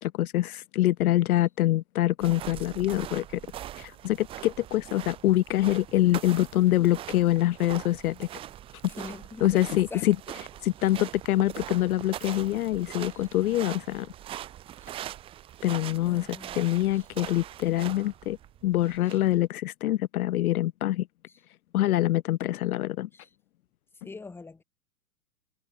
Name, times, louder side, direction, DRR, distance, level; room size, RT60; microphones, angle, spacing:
voice 1, 0.0-3.4 3.8-8.3 9.4-10.2 10.6-14.1 15.6-16.3 16.6-18.4 18.6-21.1 21.7-23.1, left 15 dB, 60° left, 0.6 m, -25 dB
sound 1, 2.2-19.4, right 12 dB, 10° right, 0.5 m, -42 dB
voice 2, 8.8-9.6 9.9-10.1 13.1-13.3 14.8-15.0 16.0-16.6 23.1-23.3 24.0-24.6, left 3 dB, 5° left, 1.0 m, -43 dB
hypercardioid pair, 120°, 49 cm